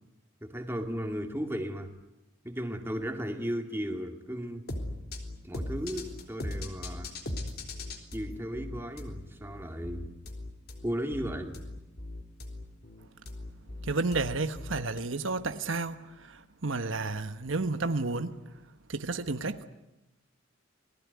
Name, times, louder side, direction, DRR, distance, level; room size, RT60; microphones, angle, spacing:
voice 1, 0.4-1.9 2.4-4.7 5.4-7.1 8.1-10.1 10.8-11.7, equal, 10° right, 2.4 m, -35 dB
sound 1, 4.7-15.0, left 1 dB, 50° left, 3.7 m, -39 dB
voice 2, 13.9-16.0 16.6-18.3 18.9-19.6, right 3 dB, 75° right, 1.3 m, -31 dB
28.0 x 20.0 x 9.6 m
head